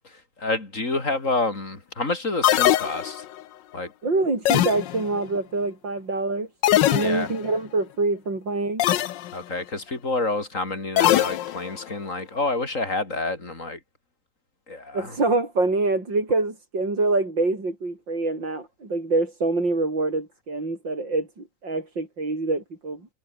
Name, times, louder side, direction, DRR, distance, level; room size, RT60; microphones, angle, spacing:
voice 1, 0.4-3.2 3.7-3.9 7.0-7.3 9.3-13.8 14.7-15.2, left 2 dB, 45° left, 4.3 m, -28 dB
sound 1, 2.4-3.4 4.5-5.2 6.6-7.5 8.8-9.3 11.0-11.8, left 13 dB, 80° left, 1.5 m, -22 dB
voice 2, 4.0-6.5 6.9-8.8 14.9-23.0, right 3 dB, 80° right, 6.7 m, -25 dB
omnidirectional pair, 2.0 m